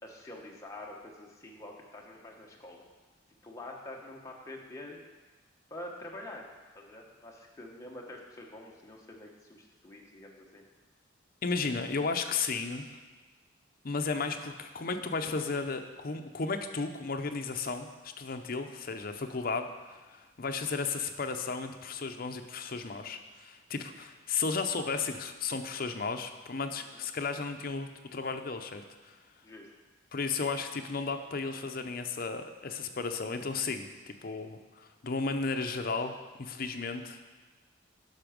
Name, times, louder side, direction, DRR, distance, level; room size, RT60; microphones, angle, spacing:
voice 1, 0.0-2.8 3.4-5.0 5.7-6.5 6.7-10.6 26.7-27.1 29.4-29.7, left 1 dB, 15° left, -2 dB, 1.2 m, -46 dB
voice 2, 11.4-12.9 13.8-29.2 30.1-37.2, left 4 dB, 50° left, 6 dB, 0.6 m, -34 dB
11.0 x 6.0 x 5.1 m, 1.3 s
head